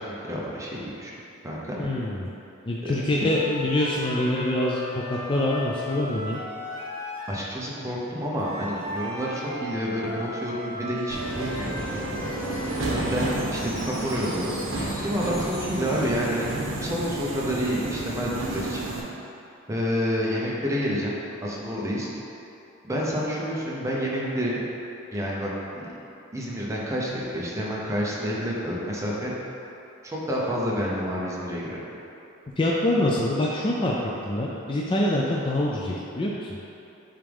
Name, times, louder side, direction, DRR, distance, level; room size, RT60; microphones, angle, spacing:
voice 1, 0.1-1.1 1.4-1.8 2.8-3.0 7.3-11.8 12.9-14.6 15.0-18.8 19.7-22.1 22.8-24.6 25.1-25.9 26.3-29.3 30.0-31.8, equal, 15° right, -5 dB, 0.8 m, -29 dB
voice 2, 1.8-2.3 2.7-6.4 32.6-34.0 34.3-36.6, left 1 dB, 25° left, -4 dB, 0.4 m, -25 dB
sound 1, 3.2-7.5 8.4-13.0, left 1 dB, 90° left, 1.0 m, -36 dB
Wind chime, 11.0-17.0, left 1 dB, 45° left, 1.4 m, -44 dB
Subway metro underground, 11.1-19.0, right 2 dB, 75° right, 0.9 m, -31 dB
8.5 x 3.6 x 3.5 m, 2.9 s
head